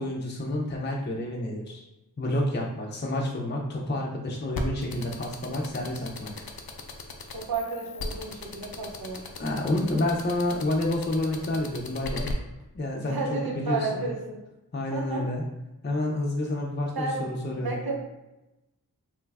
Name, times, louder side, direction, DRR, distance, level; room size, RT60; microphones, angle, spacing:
voice 1, 0.0-1.8 2.2-6.3 9.4-12.3 12.7-14.0 14.7-15.4 15.8-17.8, left 1 dB, 30° left, -1 dB, 0.5 m, -29 dB
sound 1, 4.5-12.3, left 3 dB, 85° left, 0.5 m, -36 dB
voice 2, 7.3-9.2 13.1-14.4 14.9-15.3 17.0-17.2 17.5-18.0, right 3 dB, 85° right, -1 dB, 0.7 m, -32 dB
3.1 x 2.3 x 3.3 m, 0.97 s
wide cardioid pair, 55°, 36 cm